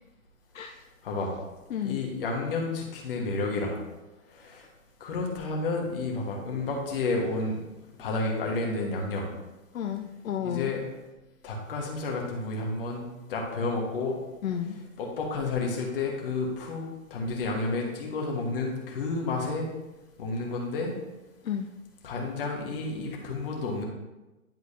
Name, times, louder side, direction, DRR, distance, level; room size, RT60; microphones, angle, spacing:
voice 1, 1.0-1.3 1.8-3.8 4.3-4.7 5.0-7.6 8.0-9.3 10.4-10.8 11.4-13.0 13.3-14.1 15.0-16.8 17.1-19.7 20.2-20.9 22.0-23.8, left 3 dB, 40° left, 0 dB, 1.6 m, -30 dB
voice 2, 9.7-10.7 14.4-14.8 21.4-21.7, left 9 dB, 70° left, 4 dB, 0.6 m, -32 dB
10.5 x 4.6 x 2.8 m, 1.1 s
hypercardioid pair, 160°, 43 cm